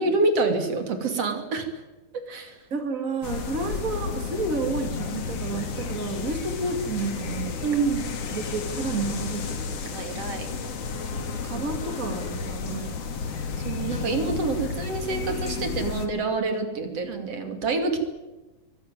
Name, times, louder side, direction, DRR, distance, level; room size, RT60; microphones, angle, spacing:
voice 1, 0.0-1.7 2.3-2.6 7.6-8.1 9.8-10.5 13.6-18.0, right 3 dB, 50° right, 6 dB, 3.6 m, -27 dB
voice 2, 2.7-7.7 8.3-9.8 10.9-14.1, right 3 dB, 30° right, 6 dB, 2.0 m, -31 dB
sound 1, 3.2-16.1, left 5 dB, 55° left, 2.9 m, -32 dB
23.0 x 18.5 x 9.4 m, 1.1 s
omnidirectional pair, 3.6 m